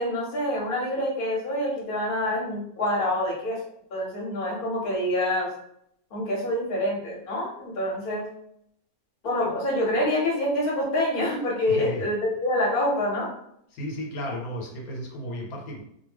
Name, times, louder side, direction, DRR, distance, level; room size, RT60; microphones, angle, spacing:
voice 1, 0.0-3.6 3.9-5.5 6.1-8.3 9.2-13.3, left 1 dB, 45° left, -3 dB, 0.9 m, -26 dB
voice 2, 11.7-12.0 13.7-15.8, equal, 80° left, 0 dB, 1.1 m, -34 dB
2.4 x 2.1 x 3.3 m, 0.72 s
omnidirectional pair, 1.5 m